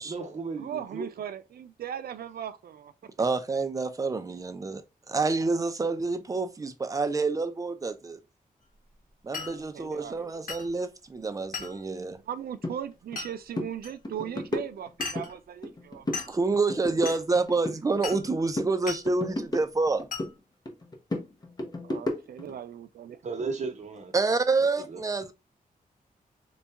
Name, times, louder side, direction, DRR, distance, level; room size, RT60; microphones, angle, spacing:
voice 1, 0.1-1.1 23.2-24.1 24.9-25.0, right 4 dB, 50° right, 0.9 m, -34 dB
voice 2, 0.6-2.9 9.3-10.8 11.5-11.6 12.3-16.1 21.8-23.2, right 9 dB, 85° right, 0.5 m, -38 dB
voice 3, 3.2-8.2 9.2-12.2 16.3-20.1 24.1-25.3, right 3 dB, 20° right, 0.5 m, -28 dB
Glass, 9.3-9.6 10.5-10.7 11.5-11.8 13.2-13.3 13.8-13.9 15.0-15.3 16.1-16.4 17.1-17.2 18.0-18.3 18.9-19.1 20.1-20.3, left 4 dB, 65° left, 1.4 m, -36 dB
sound 1, 12.6-12.8 13.1-13.3 13.5-13.7 14.0-15.3 15.6-16.3 16.5-18.3 18.6-20.3 20.7-22.5, left 1 dB, 25° left, 0.7 m, -33 dB
4.0 x 2.3 x 3.4 m
wide cardioid pair, 160°, 15 cm